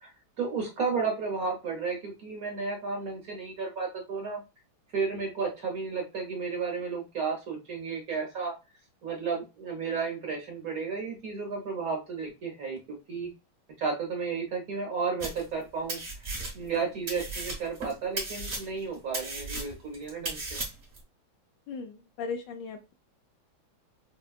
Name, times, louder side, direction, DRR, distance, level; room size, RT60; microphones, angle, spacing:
voice 1, 0.0-4.4 4.9-8.5 9.0-12.8 13.1-13.3 13.8-16.0 16.5-20.6, right 5 dB, 55° right, 0 dB, 1.1 m, -33 dB
sound 1, 15.2-15.6 15.9-16.8 17.1-21.0, right 2 dB, 35° right, 1.1 m, -36 dB
voice 2, 21.7-22.8, left 5 dB, 75° left, 5 dB, 1.1 m, -37 dB
4.4 x 2.2 x 2.3 m, 0.26 s
omnidirectional pair, 2.2 m